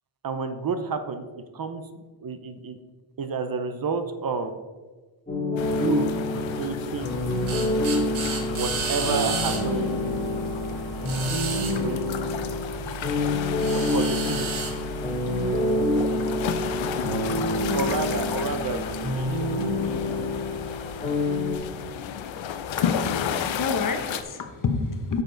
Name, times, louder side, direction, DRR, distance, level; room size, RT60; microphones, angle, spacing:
voice 1, 0.2-1.2 1.5-2.8 3.2-4.5 5.7-7.2 8.5-10.2 11.7-12.0 13.9-14.6 17.7-19.5, right 4 dB, 45° right, 9 dB, 0.8 m, -30 dB
sound 1, 5.3-21.6, left 2 dB, 15° left, 2.7 m, -27 dB
sound 2, 5.6-24.2, left 8 dB, 70° left, 0.8 m, -34 dB
sound 3, 7.0-21.5, right 5 dB, 85° right, 1.6 m, -35 dB
voice 2, 22.8-25.2, left 4 dB, 40° left, 6 dB, 1.0 m, -29 dB
9.1 x 6.8 x 3.9 m, 1.3 s
cardioid pair, 120°, 48 cm